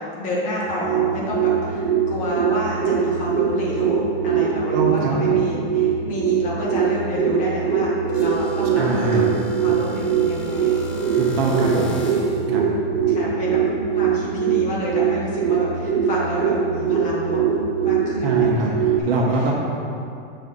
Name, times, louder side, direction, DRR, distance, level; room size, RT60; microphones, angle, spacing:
voice 1, 0.0-7.9 8.2-9.2 9.6-10.9 12.5-13.6 13.9-17.4 17.8-19.5, left 1 dB, 25° left, -5 dB, 1.2 m, -30 dB
sound 1, 0.6-19.0, right 7 dB, 35° right, 0.4 m, -22 dB
voice 2, 4.7-5.1 8.7-9.2 11.1-11.9 12.5-12.6 18.2-19.5, right 2 dB, 70° right, -2 dB, 1.4 m, -23 dB
sound 2, 8.1-12.5, right 5 dB, 75° left, 1.5 m, -34 dB
6.5 x 3.3 x 5.6 m, 2.5 s
supercardioid pair, 170°, 30 cm